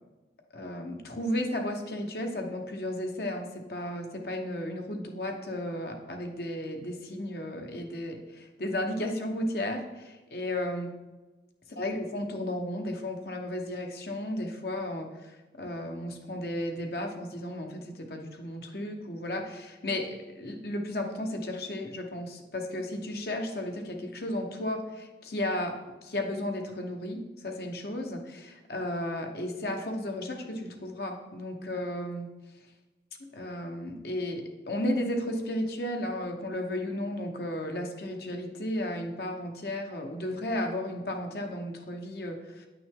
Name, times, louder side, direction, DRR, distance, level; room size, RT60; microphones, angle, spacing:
voice 1, 0.5-10.9 11.8-32.3 33.3-42.7, left 1 dB, 60° left, 3 dB, 1.0 m, -34 dB
9.3 x 6.0 x 3.7 m, 1.2 s
head